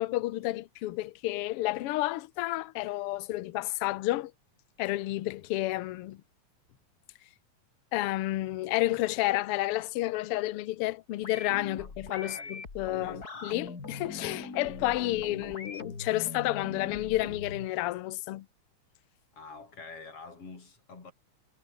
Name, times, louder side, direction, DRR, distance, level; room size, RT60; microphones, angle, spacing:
voice 1, 0.0-4.3 4.8-6.2 7.9-18.5, left 17 dB, 70° left, 1.4 m, -31 dB
sound 1, 11.2-17.7, left 4 dB, 30° left, 3.5 m, -41 dB
voice 2, 11.8-12.6 13.0-13.5 19.3-21.1, left 4 dB, 50° left, 5.1 m, -48 dB
omnidirectional pair, 3.3 m